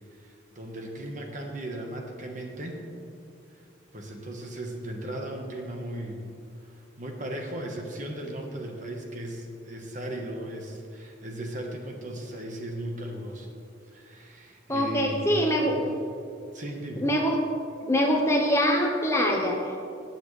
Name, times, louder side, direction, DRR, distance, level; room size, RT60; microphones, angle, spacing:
voice 1, 0.2-2.8 3.9-6.2 6.6-13.5 13.9-15.9 16.5-17.0, right 1 dB, 40° right, 2 dB, 1.2 m, -37 dB
voice 2, 14.7-15.8 17.0-17.4 17.8-19.8, equal, 15° left, 0 dB, 0.9 m, -24 dB
18.5 x 7.1 x 3.3 m, 2.5 s
head